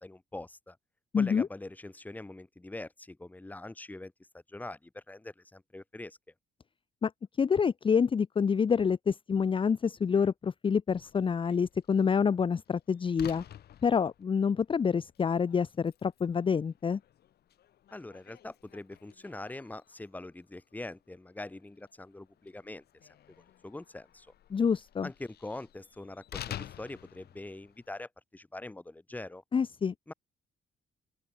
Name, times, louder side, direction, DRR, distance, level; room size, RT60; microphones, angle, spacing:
voice 1, 0.0-0.8 1.2-4.1 4.5-6.2 17.9-22.8 23.4-24.3 25.0-29.4 30.1-30.2, left 2 dB, 10° left, 1.8 m, -43 dB
voice 2, 1.1-1.5 7.0-7.1 7.4-13.4 13.8-17.0 24.5-25.1 29.5-29.9, left 6 dB, 25° left, 0.9 m, -27 dB
Slam, 10.9-28.1, left 11 dB, 55° left, 1.7 m, -51 dB
open air
cardioid pair, 160°, 20 cm